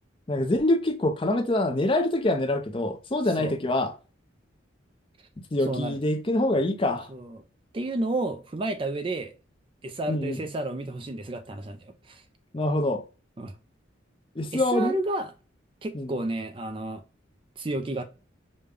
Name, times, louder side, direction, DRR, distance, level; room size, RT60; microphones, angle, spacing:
voice 1, 0.3-3.9 5.5-7.1 10.1-10.4 12.5-13.0 14.4-15.0 15.9-16.1, left 1 dB, 25° left, 0.5 m, -25 dB
voice 2, 5.7-6.0 7.1-7.4 7.7-9.3 9.8-12.2 13.4-13.6 14.5-15.3 15.8-17.0 17.6-18.0, right 2 dB, 25° right, 0.4 m, -31 dB
5.2 x 2.2 x 3.3 m
head